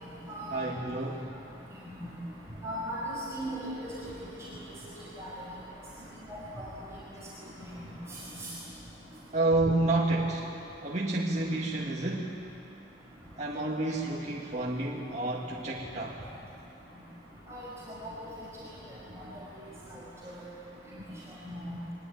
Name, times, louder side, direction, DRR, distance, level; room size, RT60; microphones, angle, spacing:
voice 1, 0.5-1.3 9.3-10.5 10.8-12.3 13.4-16.2, right 2 dB, 40° right, -3 dB, 1.8 m, -29 dB
voice 2, 1.8-2.1 2.6-4.1 4.4-4.5 4.8-5.4 6.3-6.7 7.8-8.5 17.5-18.1 18.6-18.7 19.2-19.3 19.6-20.4 21.4-21.8, equal, 15° right, -7 dB, 5.0 m, -39 dB
23.5 x 21.0 x 9.3 m, 2.9 s
head